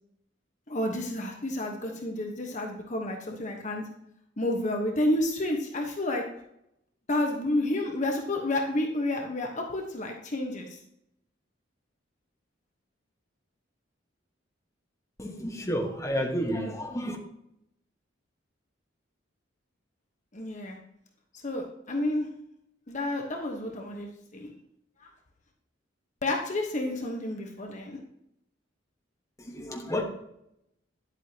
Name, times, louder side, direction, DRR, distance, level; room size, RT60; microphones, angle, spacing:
voice 1, 0.7-3.8 4.4-6.2 7.1-10.8 20.3-20.8 21.3-22.3 22.9-24.5 25.0-25.1 26.2-28.0, left 1 dB, 40° left, 2 dB, 1.2 m, -30 dB
voice 2, 15.2-17.2 29.4-30.0, equal, 15° left, 1 dB, 1.3 m, -31 dB
10.5 x 8.2 x 2.9 m, 0.79 s
head